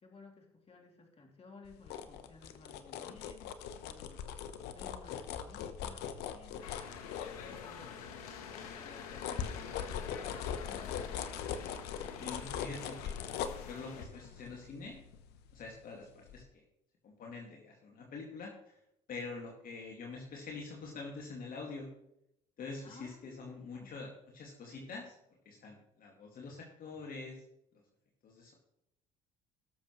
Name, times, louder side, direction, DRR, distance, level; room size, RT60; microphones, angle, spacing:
voice 1, 0.0-4.3 4.7-6.8 7.4-8.0 8.5-10.9 22.8-24.0, left 3 dB, 35° left, 2 dB, 2.9 m, -56 dB
sound 1, 1.7-7.9 8.4-15.9 16.3-16.4, left 8 dB, 65° left, 0.9 m, -41 dB
sound 2, 6.6-14.1, left 7 dB, 85° left, 1.2 m, -47 dB
voice 2, 12.0-13.1 13.7-15.0 15.5-16.6 17.0-18.5 19.1-21.9 22.6-25.2 25.5-27.4 28.2-28.5, left 3 dB, 50° left, -1 dB, 2.2 m, -45 dB
18.0 x 7.0 x 3.2 m, 0.80 s
hypercardioid pair, 70°, 18 cm